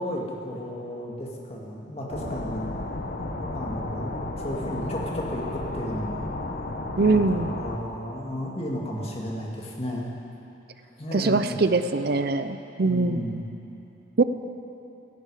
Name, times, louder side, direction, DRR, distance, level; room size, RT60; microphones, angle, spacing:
voice 1, 0.0-2.8 3.5-6.3 7.1-10.1 11.0-11.5 12.8-13.4, equal, 35° left, -2 dB, 2.2 m, -33 dB
sound 1, 2.1-7.8, left 2 dB, 50° left, 1.1 m, -33 dB
voice 2, 7.0-7.5 11.1-13.4 14.2-14.3, right 3 dB, 55° right, 10 dB, 0.5 m, -23 dB
17.5 x 15.5 x 5.0 m, 3.0 s
head